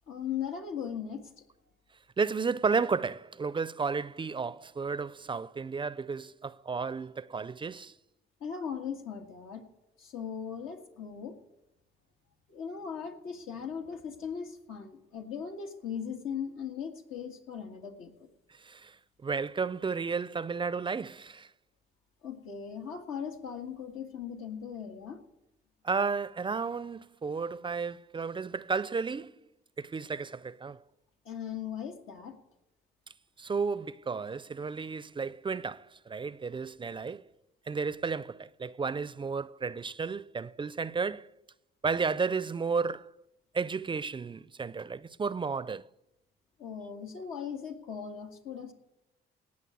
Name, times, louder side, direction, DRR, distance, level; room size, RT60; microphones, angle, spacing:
voice 1, 0.1-1.4 8.4-9.6 10.0-11.4 12.5-18.3 22.2-25.2 31.3-32.4 46.6-48.7, left 7 dB, 90° left, 1.8 m, -38 dB
voice 2, 2.2-7.9 18.5-21.5 25.8-29.4 29.8-30.8 33.4-37.3 37.7-41.3 41.8-43.1 43.5-45.8, right 5 dB, 25° right, 0.4 m, -33 dB
18.0 x 6.4 x 8.2 m
cardioid pair, 90°, 20 cm